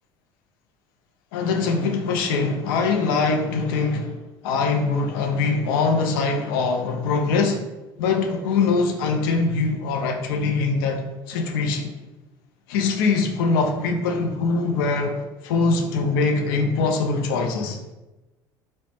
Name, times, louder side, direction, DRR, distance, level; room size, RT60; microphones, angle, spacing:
voice 1, 1.3-4.2 4.4-7.6 8.0-11.9 12.7-17.8, left 4 dB, 75° left, 0.4 m, -23 dB
2.0 x 2.0 x 3.0 m
hypercardioid pair, 70°, 12 cm